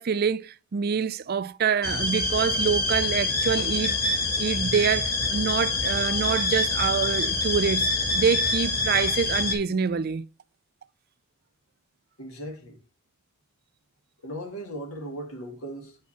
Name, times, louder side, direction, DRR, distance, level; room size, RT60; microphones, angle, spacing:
voice 1, 0.0-7.9 8.1-10.3, right 6 dB, 45° right, 0.4 m, -26 dB
sound 1, 1.8-9.5, left 3 dB, 45° left, 1.8 m, -26 dB
voice 2, 12.2-12.8 14.2-16.0, right 1 dB, 70° left, 2.3 m, -37 dB
8.2 x 4.8 x 4.3 m
head